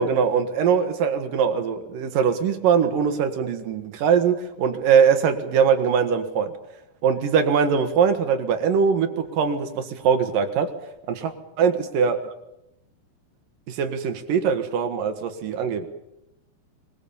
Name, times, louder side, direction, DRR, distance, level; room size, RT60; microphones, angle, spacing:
voice 1, 0.0-6.5 7.0-10.7 11.1-11.3 11.6-12.3 13.7-15.9, right 6 dB, 60° right, 8 dB, 3.1 m, -22 dB
23.0 x 22.5 x 7.2 m, 0.86 s
omnidirectional pair, 4.7 m